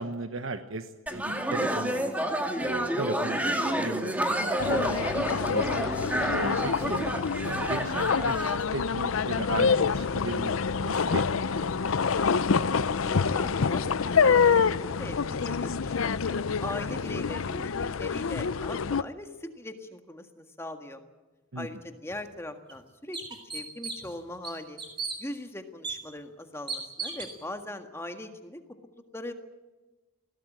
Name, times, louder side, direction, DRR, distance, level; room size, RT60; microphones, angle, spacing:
voice 1, 0.0-2.1 2.6-5.9 6.3-11.7 21.5-21.7, right 2 dB, 80° right, 8 dB, 1.1 m, -37 dB
sound 1, 1.1-8.6, right 1 dB, 5° right, 2.1 m, -29 dB
sound 2, 4.6-19.0, left 5 dB, 85° left, 0.6 m, -26 dB
voice 2, 13.0-21.0 21.5-23.2 23.5-24.8 25.2-28.6 29.1-29.3, left 1 dB, 10° left, 6 dB, 1.7 m, -40 dB
sound 3, 22.1-22.2 22.7-22.8 23.1-24.1 24.4-25.2 25.8-26.0 26.7-27.3, right 4 dB, 25° right, 3.9 m, -35 dB
21.0 x 17.0 x 9.1 m, 1.2 s
head